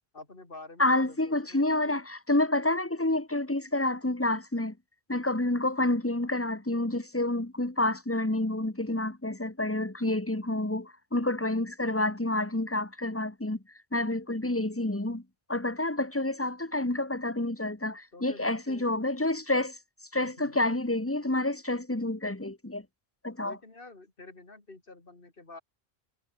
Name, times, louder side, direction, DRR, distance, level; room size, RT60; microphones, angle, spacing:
voice 1, 0.1-2.0 18.1-18.9 20.2-20.5 23.4-25.6, left 3 dB, 60° left, 3.6 m, -48 dB
voice 2, 0.8-4.8 5.1-13.6 13.9-15.2 15.5-19.8 20.1-22.9 23.2-23.6, left 2 dB, 15° left, 1.8 m, -29 dB
omnidirectional pair, 1.0 m